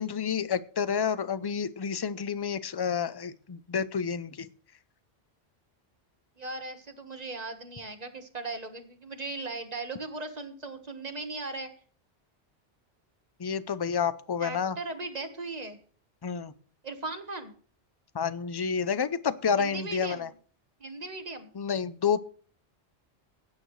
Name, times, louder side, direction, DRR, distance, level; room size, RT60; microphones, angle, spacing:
voice 1, 0.0-4.5 13.4-14.8 16.2-16.5 18.1-20.3 21.6-22.2, left 6 dB, 35° left, 15 dB, 0.4 m, -29 dB
voice 2, 6.4-11.7 14.4-15.8 16.8-17.5 19.6-20.3 20.8-21.5, right 3 dB, 35° right, 7 dB, 1.4 m, -38 dB
16.0 x 9.1 x 3.2 m, 0.43 s
omnidirectional pair, 1.1 m